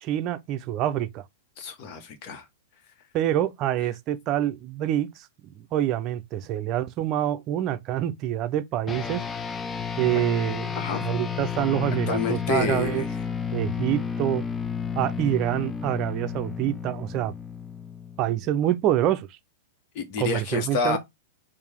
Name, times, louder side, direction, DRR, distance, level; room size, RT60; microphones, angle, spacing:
voice 1, 0.0-1.2 3.1-9.2 10.0-13.0 13.5-14.4 15.0-17.3 18.2-19.4 20.2-21.0, right 12 dB, 40° right, 0.5 m, -26 dB
voice 2, 1.6-2.4 10.7-11.0 12.1-13.1 19.9-21.0, left 5 dB, 50° left, 1.3 m, -29 dB
sound 1, 8.9-18.6, left 7 dB, 15° left, 0.5 m, -32 dB
4.6 x 2.6 x 3.5 m
hypercardioid pair, 125°, 0 cm